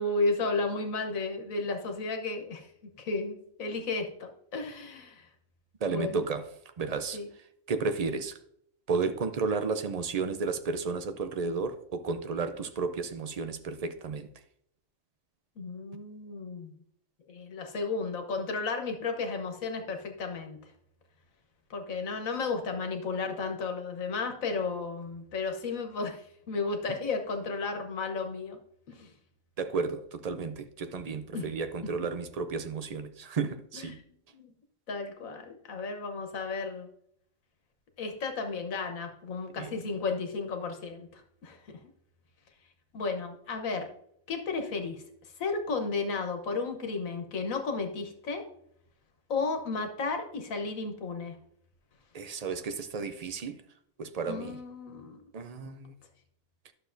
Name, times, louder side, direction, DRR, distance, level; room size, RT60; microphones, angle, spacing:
voice 1, 0.0-2.7 3.0-5.3 5.9-6.3 7.1-7.3 15.6-16.7 17.3-20.6 21.7-28.6 28.9-29.1 31.3-31.5 33.7-34.0 34.3-34.5 34.9-36.9 38.0-41.6 42.9-43.9 44.3-45.0 45.4-48.4 49.3-51.4 54.2-55.2, left 3 dB, 80° left, 1.5 m, -33 dB
voice 2, 5.8-6.5 6.8-7.2 7.7-8.4 8.9-14.3 29.6-34.0 39.6-39.8 52.1-53.6 54.0-54.6 55.3-55.9, right 4 dB, 65° right, 0.4 m, -32 dB
11.5 x 6.6 x 2.6 m
omnidirectional pair, 1.4 m